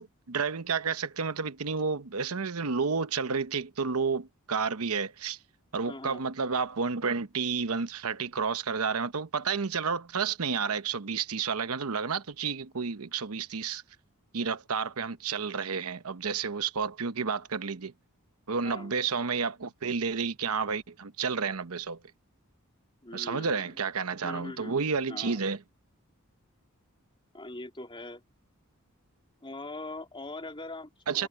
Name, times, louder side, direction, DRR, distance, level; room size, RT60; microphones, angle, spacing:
voice 1, 0.0-5.4 5.7-13.8 14.3-17.9 18.5-22.0 23.1-25.6 31.1-31.3, right 5 dB, 85° right, 0.9 m, -31 dB
voice 2, 5.9-6.2 18.6-18.9 23.0-23.7 24.2-24.7 25.1-25.4 27.3-28.2 29.4-31.3, left 2 dB, 25° left, 3.7 m, -41 dB
head